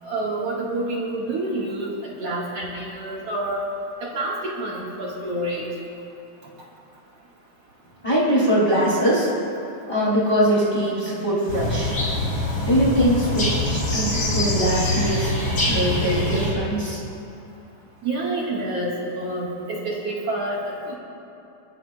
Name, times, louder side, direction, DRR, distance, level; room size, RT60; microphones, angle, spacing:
voice 1, 0.0-3.7 4.0-5.7 18.0-21.0, right 2 dB, 55° right, -5 dB, 3.1 m, -28 dB
voice 2, 8.0-9.3 9.8-11.9 12.6-15.3 15.6-17.0, equal, 10° left, -7 dB, 3.5 m, -22 dB
sound 1, 11.5-16.5, left 1 dB, 35° left, 5.0 m, -24 dB
29.5 x 13.5 x 2.6 m, 2.7 s
omnidirectional pair, 3.4 m